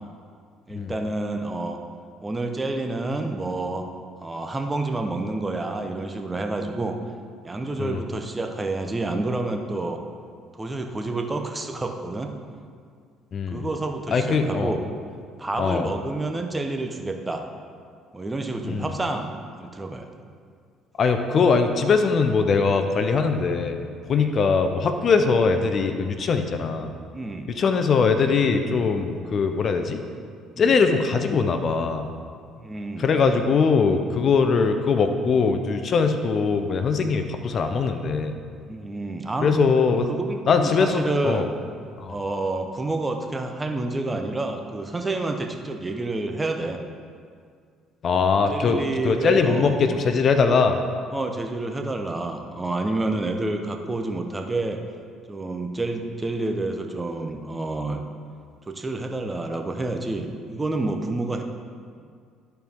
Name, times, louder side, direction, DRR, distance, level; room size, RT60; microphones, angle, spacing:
voice 1, 0.7-1.8 2.2-3.9 4.2-7.0 7.4-10.0 10.5-12.3 13.5-14.8 15.4-17.4 18.1-19.3 19.6-20.1 24.1-24.3 25.1-25.2 27.1-27.5 28.7-28.8 30.6-30.7 32.5-33.1 37.0-37.2 38.7-39.6 40.1-41.5 42.1-46.8 48.5-50.0 51.1-54.8 55.3-58.0 58.7-61.4, right 2 dB, 20° right, 4 dB, 0.9 m, -29 dB
voice 2, 13.3-13.6 14.1-14.7 15.6-15.9 18.6-18.9 21.0-26.9 27.6-30.0 30.6-32.1 33.0-38.3 39.4-40.1 40.5-41.5 42.0-42.2 48.0-50.8, left 5 dB, 50° left, 7 dB, 0.7 m, -21 dB
13.0 x 4.6 x 3.6 m, 2.1 s
supercardioid pair, 70°, 0 cm